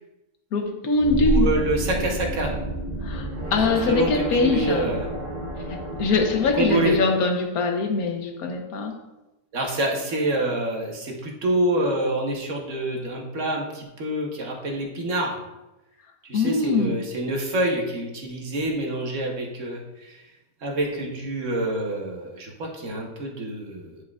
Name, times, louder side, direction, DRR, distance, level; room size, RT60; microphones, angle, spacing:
voice 1, 0.5-1.5 3.0-4.9 5.7-8.9 16.3-17.0, left 3 dB, 70° left, 4 dB, 1.3 m, -23 dB
sound 1, 0.9-7.0, equal, 40° right, 0.8 m, -29 dB
voice 2, 1.2-2.5 3.9-5.1 6.6-7.0 9.5-15.4 16.2-20.3 20.6-24.0, right 1 dB, 55° right, 0 dB, 1.4 m, -27 dB
9.9 x 4.8 x 2.4 m, 1.0 s
omnidirectional pair, 1.6 m